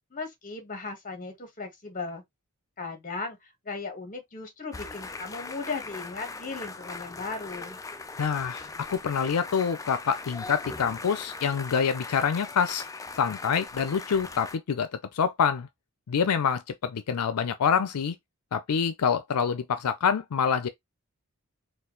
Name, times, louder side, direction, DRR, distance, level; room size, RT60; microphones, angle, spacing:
voice 1, 0.1-2.2 2.8-7.8, left 3 dB, 35° left, 1.3 m, -37 dB
sound 1, 4.7-14.6, left 3 dB, 15° left, 0.3 m, -40 dB
voice 2, 8.2-12.8 13.2-15.7 16.1-18.2 18.5-20.7, left 6 dB, 85° left, 0.5 m, -26 dB
4.4 x 2.4 x 3.8 m
head